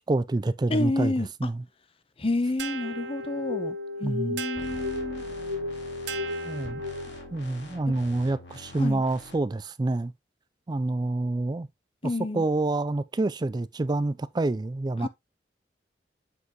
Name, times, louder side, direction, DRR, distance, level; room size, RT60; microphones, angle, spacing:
voice 1, 0.1-1.6 4.0-4.4 6.4-6.8 7.3-10.1 10.7-11.7 12.0-15.1, right 2 dB, 25° right, 0.4 m, -27 dB
voice 2, 0.7-1.3 2.2-5.2 8.8-9.0 12.0-12.4 15.0-15.1, left 2 dB, 30° left, 0.7 m, -29 dB
sound 1, 2.6-7.4, left 1 dB, 80° right, 0.9 m, -34 dB
sound 2, 4.5-9.3, equal, 75° left, 3.4 m, -44 dB
8.0 x 5.5 x 2.9 m
head